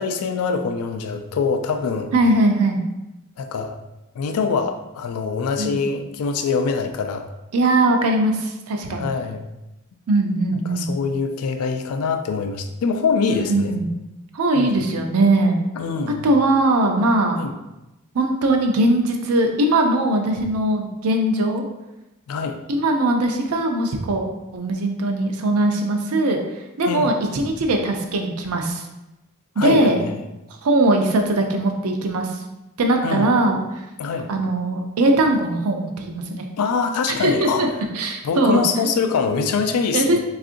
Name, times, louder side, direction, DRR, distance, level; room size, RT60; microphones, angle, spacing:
voice 1, 0.0-2.1 3.4-3.8 4.1-7.3 8.9-9.5 10.7-13.7 14.5-14.9 15.8-16.3 17.4-17.5 22.3-22.6 26.9-27.1 29.6-30.2 33.0-33.4 34.0-34.3 36.6-37.6 38.2-40.2, left 5 dB, 80° left, 6 dB, 0.3 m, -24 dB
voice 2, 2.1-2.8 5.6-5.8 7.5-9.0 10.1-10.9 13.5-13.9 14.3-15.6 16.2-17.4 18.1-21.6 22.7-24.2 24.5-26.4 26.8-28.8 29.6-30.0 30.6-32.3 32.8-33.6 34.3-36.4 37.1-37.7 37.9-38.6 39.9-40.2, right 2 dB, 75° right, 3 dB, 0.5 m, -20 dB
3.6 x 2.4 x 2.5 m, 0.97 s
head